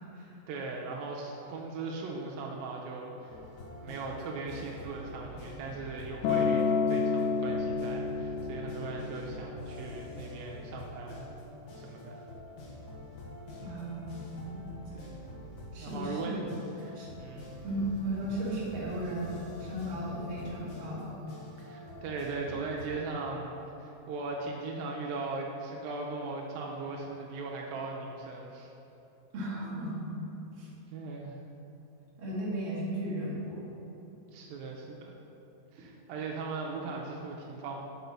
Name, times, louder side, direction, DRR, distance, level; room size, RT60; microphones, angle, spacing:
voice 1, 0.5-3.4 3.8-11.2 11.8-12.2 15.0-15.2 15.8-16.4 16.8-17.5 21.6-28.7 30.9-31.4 34.3-35.1 35.7-37.8, right 3 dB, 85° right, -1 dB, 2.3 m, -39 dB
sound 1, 3.3-22.9, left 1 dB, 65° left, 2.2 m, -46 dB
Acoustic guitar, 6.2-10.5 11.4-11.5, left 5 dB, 85° left, 1.8 m, -30 dB
voice 2, 13.6-14.6 15.7-16.5 16.9-17.1 17.6-21.1 29.3-30.1 30.6-30.7 32.2-33.7 35.8-35.9, right 1 dB, 45° right, -7 dB, 2.1 m, -35 dB
6.1 x 5.3 x 5.7 m, 3.0 s
omnidirectional pair, 4.2 m